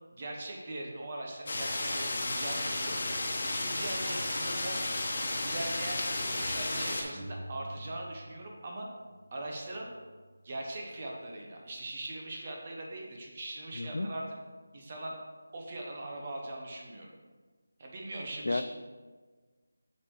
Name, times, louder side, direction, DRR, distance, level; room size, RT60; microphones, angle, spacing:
voice 1, 0.1-3.0 3.4-4.8 5.4-8.9 9.3-9.9 10.4-14.2 14.7-15.1 15.5-17.1 17.8-18.6, right 2 dB, 35° right, 0 dB, 1.0 m, -40 dB
sound 1, 1.5-7.0, left 2 dB, 45° left, 1.2 m, -33 dB
sound 2, 7.1-8.6 8.9-10.7, right 1 dB, 20° right, 1.9 m, -48 dB
voice 2, 13.7-14.1 18.4-18.6, left 2 dB, 65° left, 10 dB, 0.5 m, -31 dB
7.1 x 6.4 x 3.3 m, 1.4 s
figure-of-eight pair, 165°, 0 cm